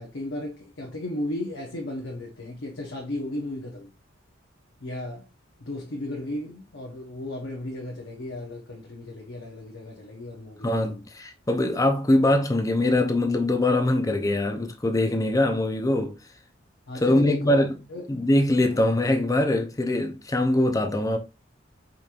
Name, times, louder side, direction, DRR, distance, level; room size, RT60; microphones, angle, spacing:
voice 1, 0.0-3.9 4.8-5.3 5.6-11.0 16.9-17.6 17.9-18.0, left 1 dB, 70° left, 0.8 m, -35 dB
voice 2, 10.6-16.2 16.9-17.8 18.1-21.2, left 1 dB, 15° left, 0.5 m, -23 dB
5.0 x 3.0 x 2.4 m
head